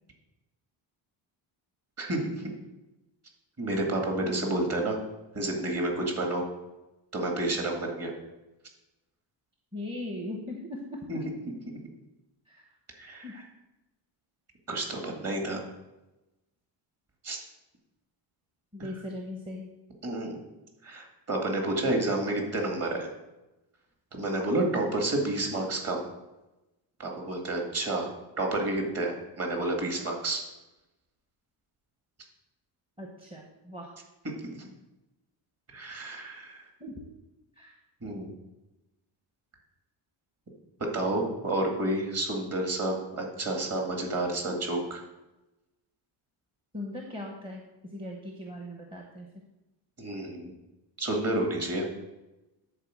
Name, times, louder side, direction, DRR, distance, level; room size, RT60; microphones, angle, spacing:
voice 1, 3.6-5.0 5.3-6.4 7.1-8.1 11.1-11.2 13.0-13.3 14.7-15.6 17.2-17.4 20.0-20.4 20.8-23.1 24.1-26.0 27.0-28.1 28.4-30.4 34.5-34.6 35.7-36.6 38.0-38.3 40.9-45.0 50.0-50.5 51.0-51.9, right 2 dB, 30° right, 1 dB, 2.1 m, -30 dB
voice 2, 9.7-10.8 12.5-12.6 13.2-13.3 18.7-19.7 33.0-33.9 36.8-36.9 37.6-37.8 46.7-47.6 47.9-49.3, left 1 dB, 10° right, 0 dB, 0.9 m, -39 dB
10.5 x 4.5 x 7.5 m, 1.0 s
cardioid pair, 175°, 46 cm